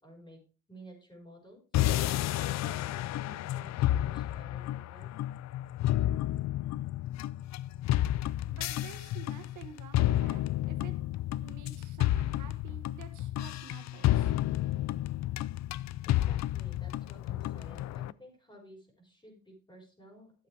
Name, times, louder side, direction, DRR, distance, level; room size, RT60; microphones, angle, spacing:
voice 1, 0.0-0.4 0.7-1.6 2.3-5.1 16.0-20.5, equal, 15° left, 1 dB, 5.2 m, -53 dB
sound 1, 1.7-18.1, left 14 dB, 65° left, 0.4 m, -31 dB
voice 2, 8.5-11.0 11.4-14.4, right 8 dB, 80° right, 7 dB, 1.6 m, -50 dB
12.5 x 8.0 x 3.4 m, 0.35 s
cardioid pair, 90°, 30 cm